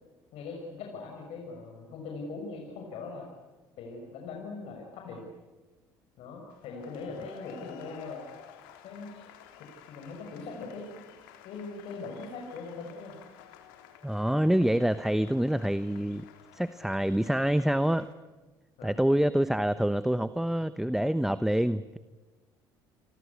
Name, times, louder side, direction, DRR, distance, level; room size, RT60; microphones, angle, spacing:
voice 1, 0.3-3.3 3.8-5.2 6.2-8.2 8.8-9.3 9.9-11.0 11.4-13.1 18.8-18.9, left 4 dB, 65° left, 1 dB, 6.2 m, -41 dB
sound 1, 6.5-18.1, left 10 dB, 85° left, 3.5 m, -52 dB
voice 2, 14.0-16.2 16.5-18.1 18.8-22.0, right 1 dB, 5° right, 13 dB, 0.9 m, -26 dB
28.5 x 24.5 x 8.5 m, 1.2 s
hypercardioid pair, 70°, 11 cm